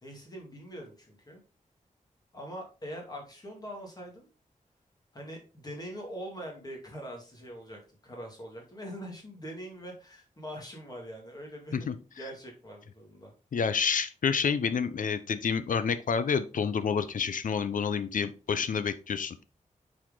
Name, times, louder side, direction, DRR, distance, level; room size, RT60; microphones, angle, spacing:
voice 1, 0.0-1.4 2.3-4.3 5.1-11.9 12.2-13.3, equal, 30° left, 0 dB, 2.3 m, -43 dB
voice 2, 13.5-19.4, left 6 dB, 80° left, 12 dB, 0.7 m, -29 dB
7.4 x 4.3 x 3.8 m, 0.34 s
wide cardioid pair, 140°, 13 cm